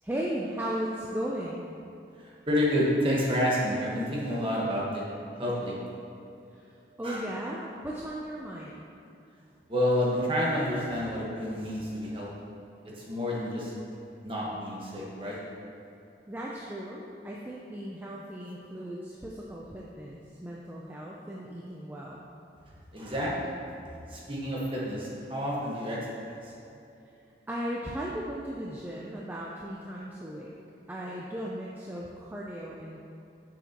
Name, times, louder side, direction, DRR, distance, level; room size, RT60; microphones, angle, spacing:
voice 1, 0.0-1.7 6.5-8.8 16.3-22.2 27.0-27.1 27.5-30.5 30.9-33.0, right 1 dB, 10° right, -4 dB, 0.4 m, -36 dB
voice 2, 2.5-5.1 5.4-5.7 7.0-7.2 9.7-12.3 13.1-13.7 14.2-15.4 22.9-23.5 24.1-26.0 26.3-26.4, equal, 30° right, -5 dB, 1.2 m, -29 dB
6.8 x 6.4 x 2.9 m, 2.7 s
head